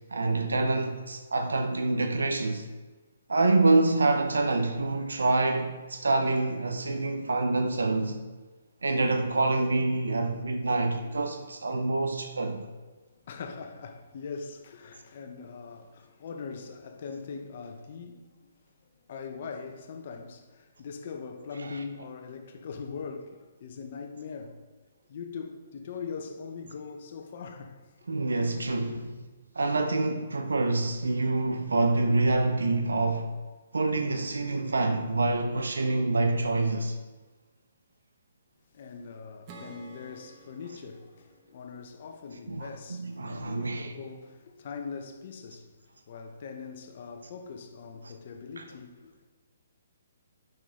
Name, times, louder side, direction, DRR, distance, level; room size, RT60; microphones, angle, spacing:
voice 1, 0.1-2.7 3.3-8.2 8.8-12.6 21.7-21.8 28.1-29.1 29.5-33.4 33.7-37.0 42.5-43.9 48.6-48.7, right 2 dB, 90° right, 0.6 m, -26 dB
voice 2, 13.1-18.5 19.1-24.7 25.0-27.8 28.7-29.0 38.7-45.7 46.1-49.3, left 5 dB, 50° left, 0.9 m, -41 dB
Acoustic guitar / Strum, 39.5-42.9, right 3 dB, 35° right, 1.1 m, -52 dB
8.6 x 5.9 x 3.8 m
hypercardioid pair, 145°, 0 cm